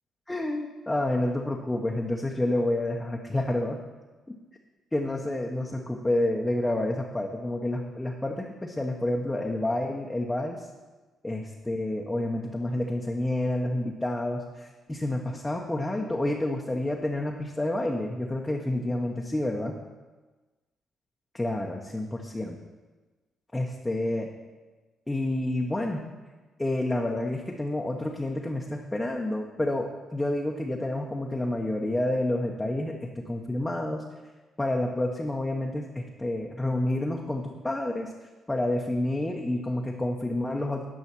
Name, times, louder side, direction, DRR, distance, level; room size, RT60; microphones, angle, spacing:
voice 1, 0.3-3.8 4.9-10.7 11.2-19.7 21.3-22.6 23.5-24.3 25.1-26.0 26.6-34.0 34.6-38.1 38.5-40.8, left 1 dB, 10° left, 0 dB, 0.9 m, -29 dB
9.8 x 5.6 x 6.0 m, 1.3 s
cardioid pair, 90°, 0 cm